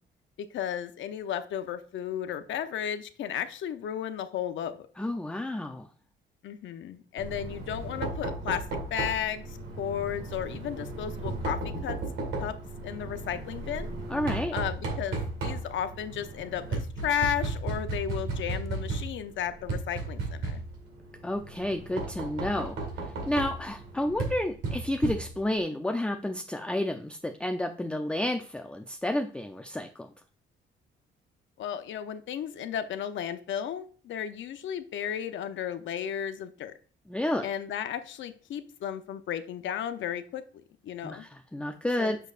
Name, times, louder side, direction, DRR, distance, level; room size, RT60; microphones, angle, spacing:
voice 1, 0.4-4.9 6.4-12.0 12.4-12.6 12.8-13.9 14.5-20.6 31.6-36.7 37.4-40.4 40.8-41.2 42.0-42.2, left 9 dB, 70° left, 9 dB, 0.7 m, -34 dB
voice 2, 5.0-5.9 14.1-14.5 21.2-30.1 37.1-37.5 41.0-42.2, left 1 dB, 5° left, 5 dB, 0.5 m, -31 dB
Knock, 7.2-25.6, right 3 dB, 85° right, 2.1 m, -35 dB
6.6 x 6.3 x 2.5 m, 0.41 s
cardioid pair, 90°, 20 cm